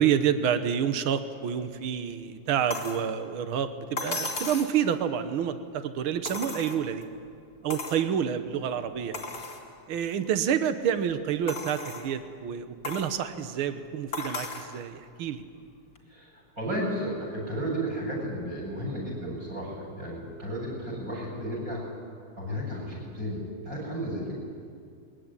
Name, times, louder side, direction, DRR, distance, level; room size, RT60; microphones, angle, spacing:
voice 1, 0.0-7.1 7.6-9.2 9.9-15.4, right 8 dB, 75° right, 10 dB, 1.2 m, -28 dB
sound 1, 2.7-3.0 4.0-4.8 6.2-7.0 7.7-8.0 8.5-8.6 9.1-9.6 10.2-10.3 11.5-12.1 12.8-13.1 14.1-14.7 16.0-16.1, left 3 dB, 25° left, 3.0 m, -35 dB
voice 2, 16.6-21.8 22.4-24.3, equal, 20° right, 0 dB, 8.3 m, -33 dB
22.0 x 22.0 x 9.9 m, 2.3 s
omnidirectional pair, 4.0 m